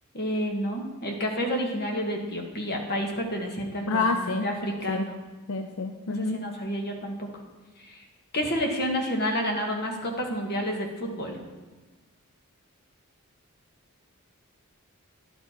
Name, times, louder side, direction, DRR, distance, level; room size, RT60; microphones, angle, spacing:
voice 1, 0.1-5.1 6.1-7.2 7.9-8.0 8.3-11.4, equal, 45° left, 1 dB, 1.5 m, -30 dB
voice 2, 3.9-4.5 4.9-5.1 5.5-6.4, left 3 dB, 75° left, 6 dB, 0.5 m, -28 dB
11.0 x 7.1 x 4.4 m, 1.2 s
head